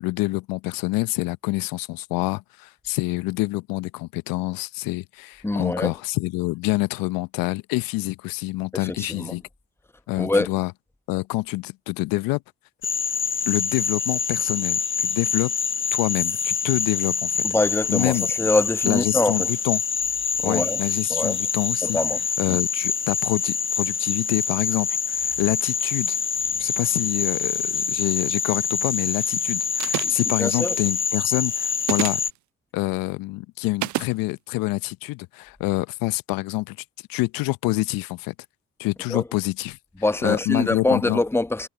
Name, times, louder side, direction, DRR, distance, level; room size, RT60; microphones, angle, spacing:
voice 1, 0.0-9.4 10.1-10.7 11.1-12.4 13.5-15.5 15.9-17.5 17.9-18.3 18.8-19.8 20.4-22.0 22.4-26.2 26.6-32.2 32.7-36.8 37.1-38.3 38.8-39.8 40.2-41.2, left 21 dB, 75° left, 0.8 m, -27 dB
voice 2, 5.4-5.9 9.0-9.3 10.2-10.5 17.4-19.5 20.4-20.8 21.1-21.4 21.8-22.2 22.5-22.6 30.4-30.7 39.1-39.2 40.0-41.7, left 2 dB, 5° left, 1.0 m, -24 dB
Frog, 12.8-32.3, left 6 dB, 35° left, 1.1 m, -26 dB
sound 1, 29.8-30.3 31.8-32.3 33.8-34.1, right 15 dB, 55° right, 0.5 m, -27 dB
hypercardioid pair, 45°, 35 cm